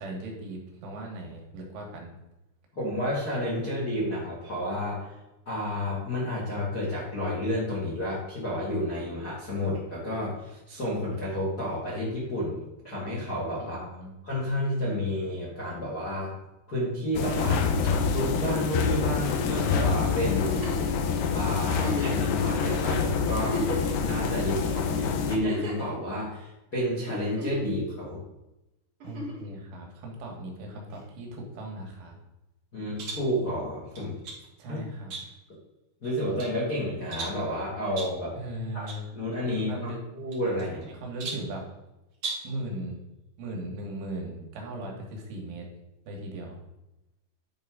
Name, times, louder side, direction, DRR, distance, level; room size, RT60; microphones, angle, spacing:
voice 1, 0.0-2.2 13.6-14.1 29.0-32.2 34.6-35.1 38.4-39.1 39.5-40.0 40.9-41.7 42.4-43.0 43.4-45.7 46.1-46.6, right 1 dB, 80° right, 0 dB, 4.0 m, -38 dB
voice 2, 2.7-5.1 5.4-13.9 14.2-16.3 16.7-17.6 18.0-20.8 21.3-23.6 24.0-28.2 32.7-34.2 34.7-34.8 36.0-38.4 38.7-39.7 40.1-40.8, left 1 dB, 60° left, -6 dB, 1.0 m, -31 dB
sound 1, 17.2-25.4, left 5 dB, 85° left, 2.3 m, -26 dB
Giggle, 20.3-20.9 21.7-22.2 22.9-23.0 23.3-24.1 25.3-25.9 27.1-27.7 29.0-29.5 30.9-31.0, equal, 35° right, 3.4 m, -35 dB
sound 2, 33.0-33.3 34.0-34.5 35.1-35.5 36.0-36.5 37.1-37.5 38.0-38.2 38.9-39.0 39.3-39.4 40.3-40.8 41.2-41.5 42.1-42.6, right 3 dB, 60° right, 1.6 m, -37 dB
11.0 x 4.8 x 3.9 m, 0.96 s
omnidirectional pair, 5.7 m